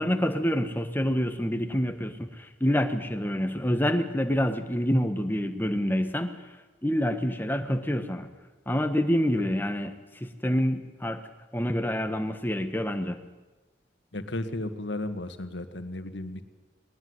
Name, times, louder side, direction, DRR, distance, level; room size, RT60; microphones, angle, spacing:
voice 1, 0.0-6.3 6.8-8.3 8.7-11.2 11.5-13.2, equal, 10° left, 7 dB, 1.4 m, -27 dB
voice 2, 14.1-16.4, left 1 dB, 65° left, 9 dB, 1.8 m, -34 dB
20.0 x 19.5 x 9.7 m, 1.2 s
head